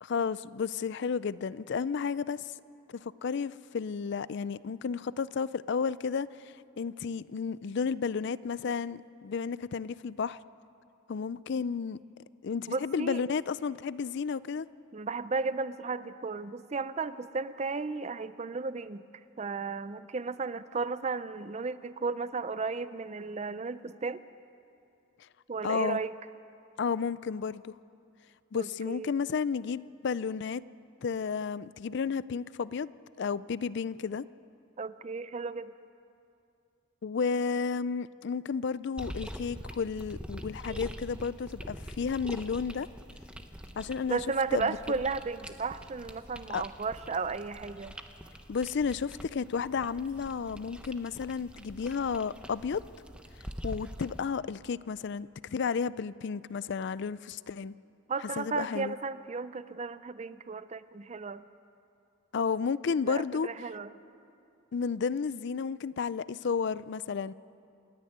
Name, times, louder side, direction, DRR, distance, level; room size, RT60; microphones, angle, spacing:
voice 1, 0.0-2.5 2.9-10.4 11.1-12.0 12.4-14.7 25.6-26.0 26.8-27.7 28.5-30.6 31.0-32.9 33.2-34.2 37.0-42.9 43.8-44.2 44.5-44.8 46.5-46.6 48.5-52.8 53.6-57.7 58.4-58.9 62.3-63.5 64.7-67.3, left 5 dB, 55° left, 18 dB, 0.4 m, -32 dB
voice 2, 12.7-13.2 14.9-19.0 19.4-24.2 25.5-26.2 28.5-29.1 34.8-35.7 40.7-41.0 44.1-47.9 58.1-61.4 63.0-63.9, right 4 dB, 35° right, 14 dB, 0.5 m, -34 dB
sound 1, 39.0-54.2, equal, 5° right, 0.8 m, -45 dB
27.0 x 10.5 x 9.3 m, 2.6 s
head